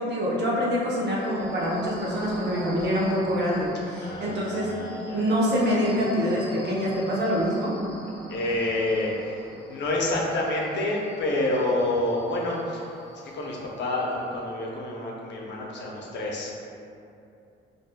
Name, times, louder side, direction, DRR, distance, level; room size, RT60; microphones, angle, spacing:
voice 1, 0.0-4.7 5.1-7.7, equal, 60° right, -5 dB, 0.9 m, -25 dB
sound 1, 0.9-14.3, equal, 5° left, 0.8 m, -44 dB
voice 2, 4.0-5.2 8.3-13.0 13.2-16.7, left 1 dB, 65° left, -3 dB, 0.7 m, -28 dB
4.2 x 2.6 x 2.2 m, 2.6 s
cardioid pair, 90°, 20 cm